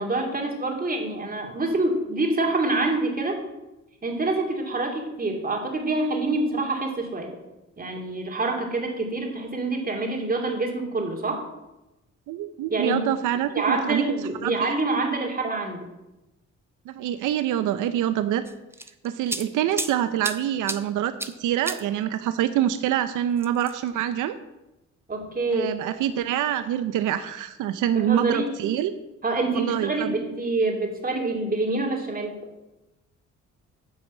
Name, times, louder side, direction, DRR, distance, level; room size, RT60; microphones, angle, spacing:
voice 1, 0.0-3.4 4.0-7.3 7.8-11.4 12.7-13.0 13.3-15.9 25.1-25.7 27.9-28.5 29.2-32.4, right 2 dB, 30° right, 1 dB, 2.6 m, -26 dB
voice 2, 12.3-14.0 14.4-14.7 16.9-18.4 19.0-24.4 25.5-28.9 29.5-30.1, right 11 dB, 85° right, 11 dB, 0.6 m, -25 dB
sound 1, 18.5-19.9 20.2-20.8 21.2-21.3 21.7-21.8 23.4-23.9, right 2 dB, 10° right, 0.7 m, -31 dB
9.6 x 5.9 x 7.3 m, 0.98 s
cardioid pair, 90°, 30 cm